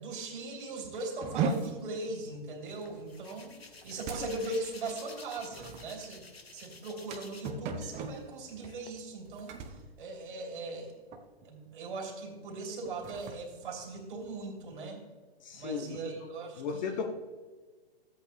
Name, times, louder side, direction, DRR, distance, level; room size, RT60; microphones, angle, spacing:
voice 1, 0.0-3.6 3.8-6.2 6.5-9.6 10.0-10.9 11.4-15.0 15.5-17.0, right 2 dB, 55° right, 1 dB, 3.2 m, -39 dB
sound 1, 1.2-10.8 11.1-11.5 11.9-12.1 12.7-14.6, right 5 dB, 25° right, 0.9 m, -39 dB
Hands, 2.7-7.7 8.0-8.9, left 4 dB, 85° left, 1.3 m, -51 dB
voice 2, 15.4-16.0 16.6-17.1, left 6 dB, 50° left, 5 dB, 1.0 m, -35 dB
14.0 x 8.3 x 3.3 m, 1.4 s
figure-of-eight pair, 120°, 30 cm